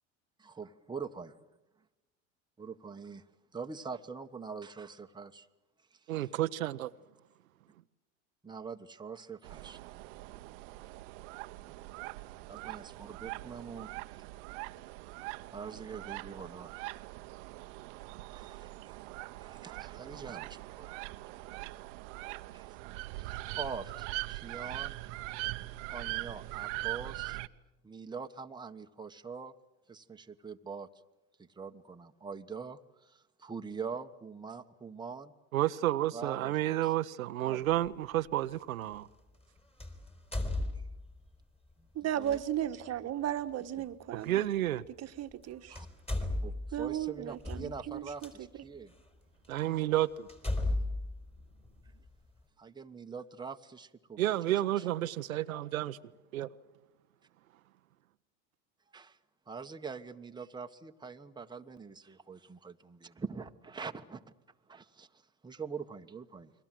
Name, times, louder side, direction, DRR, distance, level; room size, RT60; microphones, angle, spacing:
voice 1, 0.4-1.3 2.6-3.2 3.5-5.5 5.9-6.3 8.4-9.8 12.5-14.2 15.5-16.7 18.3-19.0 19.4-21.1 22.5-22.8 23.2-25.2 25.9-27.4 27.8-29.5 29.9-30.9 31.4-35.3 36.1-36.9 37.4-37.7 41.8-41.9 42.2-42.4 43.8-43.9 45.7-45.9 46.4-48.9 52.6-54.9 58.9-59.2 59.5-64.3 64.7-66.5, right 5 dB, 10° right, 1.3 m, -44 dB
voice 2, 6.1-6.9 35.5-39.1 44.1-44.8 49.5-50.3 54.2-56.0 56.3-56.5, right 14 dB, 90° right, 0.9 m, -31 dB
sound 1, 9.4-27.5, right 21 dB, 65° right, 1.0 m, -42 dB
sound 2, 37.7-37.9 39.8-41.3 42.2-42.4 44.3-44.4 45.3-45.4 45.7-48.3 49.0-49.1 49.6-49.7 50.3-52.1, left 2 dB, 15° left, 4.6 m, -35 dB
voice 3, 41.9-44.4 45.0-45.8 46.7-48.5, right 11 dB, 40° right, 1.5 m, -35 dB
29.5 x 22.5 x 7.7 m
hypercardioid pair, 95°, 40 cm